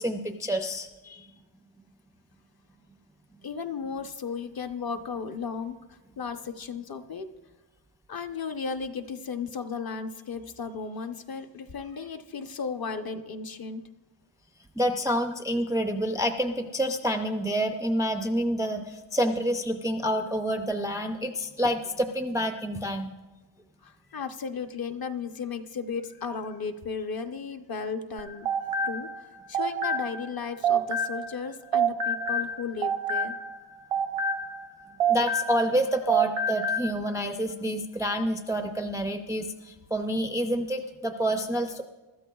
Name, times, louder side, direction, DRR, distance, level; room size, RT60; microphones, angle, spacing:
voice 1, 0.0-0.9 3.4-3.5 14.8-23.1 35.1-41.8, equal, 5° right, 5 dB, 0.4 m, -28 dB
voice 2, 3.4-5.7 6.2-7.3 8.1-13.8 23.8-28.5 28.9-29.1 29.5-33.4, left 5 dB, 45° left, 7 dB, 0.7 m, -35 dB
sound 1, 28.2-31.4 31.7-35.8 36.1-36.9, right 4 dB, 90° right, 0.8 m, -28 dB
22.5 x 13.0 x 2.3 m, 1.2 s
wide cardioid pair, 170°, 50 cm